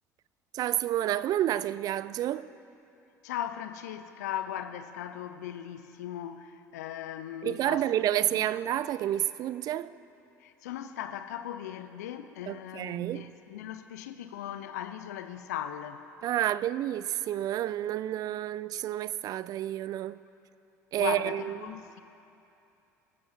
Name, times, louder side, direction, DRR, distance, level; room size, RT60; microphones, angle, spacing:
voice 1, 0.5-2.5 7.4-10.0 12.5-13.3 16.2-20.2 20.9-21.7, right 12 dB, 40° right, 0.4 m, -30 dB
voice 2, 3.2-7.9 8.3-8.5 10.4-16.0 21.0-22.0, left 10 dB, 70° left, 0.7 m, -38 dB
25.5 x 14.0 x 2.8 m
figure-of-eight pair, 65°, 9 cm